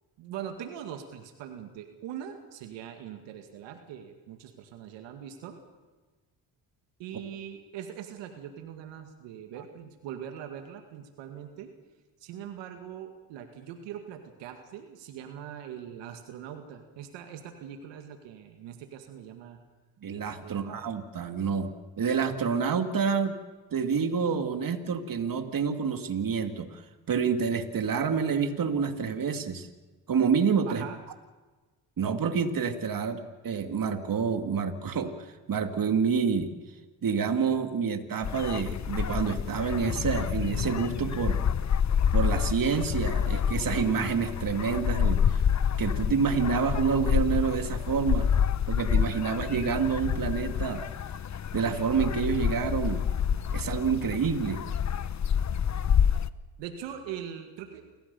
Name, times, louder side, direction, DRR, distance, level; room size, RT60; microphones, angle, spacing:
voice 1, 0.2-5.6 7.0-11.7 12.2-19.6 20.4-20.9 30.7-31.0 56.6-57.9, right 9 dB, 85° right, 6 dB, 2.2 m, -42 dB
voice 2, 20.0-23.4 23.7-26.8 27.1-29.7 30.1-30.8 32.0-36.6 37.0-41.4 42.1-45.2 45.8-48.3 48.7-50.8 51.5-53.0 53.5-54.7, right 6 dB, 50° right, 6 dB, 2.4 m, -28 dB
sound 1, 38.2-56.3, left 8 dB, 40° left, 0.9 m, -28 dB
28.5 x 15.0 x 7.0 m, 1.3 s
supercardioid pair, 65°, 43 cm